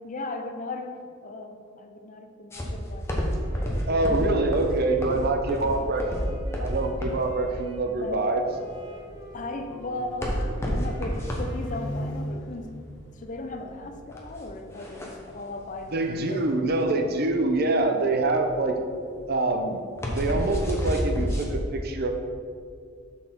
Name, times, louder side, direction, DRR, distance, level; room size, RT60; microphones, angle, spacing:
voice 1, 0.0-3.1 3.5-4.1 5.6-6.3 8.0-8.3 9.3-12.7 13.1-16.6, left 2 dB, 40° left, 5 dB, 0.6 m, -37 dB
sound 1, 2.5-21.5, equal, 15° left, 1.0 m, -31 dB
Wind instrument woodwind instrument, 3.1-7.8 8.5-12.4, left 2 dB, 20° right, 1.1 m, -48 dB
voice 2, 3.9-8.4 15.9-18.8 19.3-19.8 20.1-22.1, right 2 dB, 55° right, 5 dB, 0.7 m, -25 dB
sound 2, 8.5-14.0, equal, 65° left, 1.0 m, -40 dB
6.5 x 5.7 x 4.5 m, 2.2 s
head